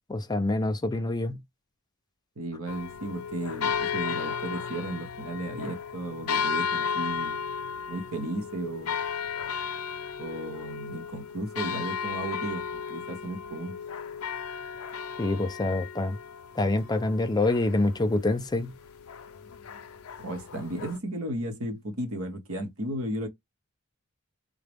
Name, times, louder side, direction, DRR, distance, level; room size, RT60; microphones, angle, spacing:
voice 1, 0.1-1.4 15.2-16.2 16.6-18.7, left 2 dB, 20° left, 0.5 m, -26 dB
voice 2, 2.4-7.4 7.9-9.0 10.2-13.8 20.2-23.3, right 1 dB, 80° right, 1.1 m, -34 dB
sound 1, 2.7-21.0, left 6 dB, 80° left, 0.5 m, -35 dB
3.7 x 2.2 x 3.4 m
head